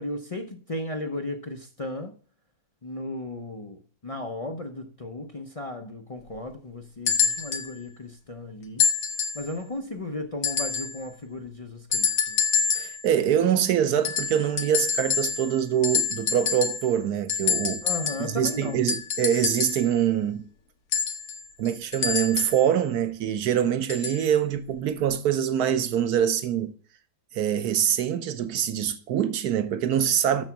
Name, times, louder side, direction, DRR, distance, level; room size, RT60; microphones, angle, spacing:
voice 1, 0.0-2.1 2.8-8.9 9.3-12.4 17.8-18.9, left 2 dB, 40° left, 0.5 m, -35 dB
sound 1, 7.1-7.7 8.8-9.5 10.4-11.0 11.9-13.0 14.0-15.6 15.8-16.9 17.3-19.9 20.9-22.6 23.9-24.2 25.1-25.2, left 6 dB, 75° left, 1.5 m, -26 dB
voice 2, 12.8-17.8 18.2-20.4 21.6-26.7 27.3-30.4, right 9 dB, 90° right, 1.3 m, -24 dB
6.9 x 6.5 x 5.9 m
omnidirectional pair, 1.6 m